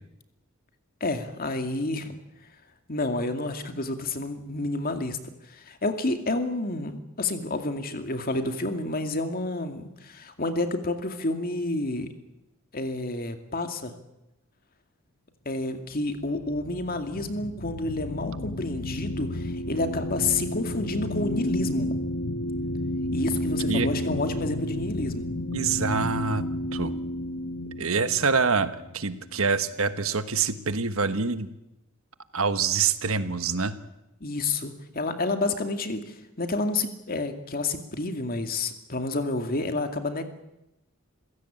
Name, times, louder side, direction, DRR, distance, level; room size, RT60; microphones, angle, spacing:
voice 1, 1.0-2.2 2.9-12.1 12.7-13.9 15.5-22.0 23.1-25.3 34.2-40.3, left 2 dB, 45° left, 7 dB, 2.3 m, -29 dB
sound 1, 16.1-29.7, left 1 dB, 65° left, 1.1 m, -31 dB
voice 2, 25.5-26.4 26.7-26.9 27.8-31.5 32.3-33.8, right 5 dB, 70° right, 11 dB, 1.3 m, -26 dB
27.5 x 16.5 x 8.8 m, 0.92 s
head